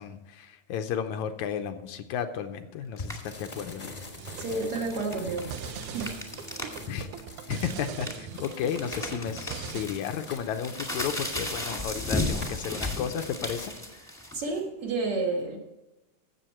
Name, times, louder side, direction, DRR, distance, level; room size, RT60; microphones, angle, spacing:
voice 1, 0.0-3.9 6.9-7.1 7.5-13.7, left 8 dB, 80° left, 8 dB, 2.0 m, -33 dB
sound 1, 3.0-13.8, left 2 dB, 25° left, 0.8 m, -44 dB
sound 2, 3.0-3.3 4.3-6.8 7.1-7.2 7.6-14.6, left 1 dB, ahead, 1.4 m, -34 dB
sound 3, 4.2-9.9, right 7 dB, 85° right, 2.3 m, -40 dB
voice 2, 4.4-6.1 14.3-15.6, right 3 dB, 50° right, 0 dB, 2.4 m, -31 dB
15.5 x 7.3 x 4.4 m, 1.0 s
omnidirectional pair, 3.5 m